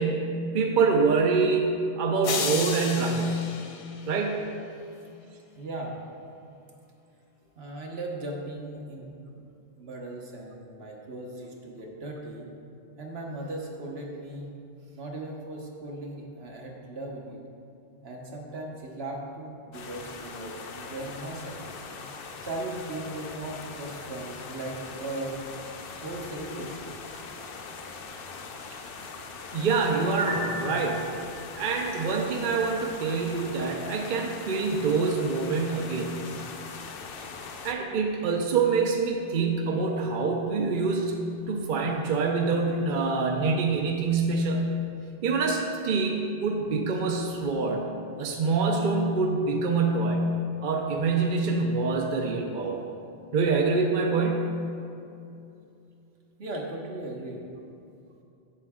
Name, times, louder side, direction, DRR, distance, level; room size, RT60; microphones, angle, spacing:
voice 1, 0.0-3.4 4.1-4.4 28.7-28.8 29.5-31.0 31.6-36.2 37.6-44.7 45.2-47.8 48.2-50.3 50.6-52.8 53.3-54.5, right 4 dB, 55° right, 2 dB, 0.7 m, -26 dB
sound 1, 2.2-4.6, left 5 dB, 50° left, 0.4 m, -33 dB
voice 2, 5.5-6.0 7.6-9.1 9.4-9.5 9.8-12.5 13.0-14.5 14.9-17.4 18.0-21.8 22.4-25.4 26.0-26.9 56.4-57.4, right 2 dB, 75° right, 0 dB, 1.3 m, -37 dB
sound 2, 19.7-37.7, left 4 dB, 65° left, 0.8 m, -41 dB
Piano, 30.1-43.1, equal, 80° left, 2.2 m, -45 dB
7.6 x 7.5 x 3.6 m, 2.6 s
omnidirectional pair, 1.1 m